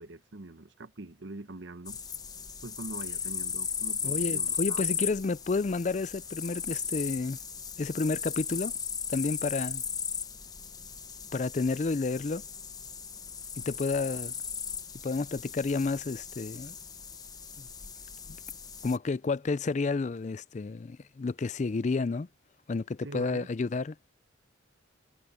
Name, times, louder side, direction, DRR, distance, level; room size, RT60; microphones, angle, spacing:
voice 1, 0.0-2.0 2.6-5.1 23.0-23.5, right 2 dB, 65° right, 1.0 m, -44 dB
sound 1, 1.9-19.0, left 7 dB, 20° left, 0.9 m, -36 dB
voice 2, 4.0-7.4 7.8-8.7 9.1-9.8 11.3-12.4 13.7-14.3 15.0-16.8 17.6-17.7 18.8-22.3 22.7-23.9, left 3 dB, 35° left, 0.4 m, -30 dB
head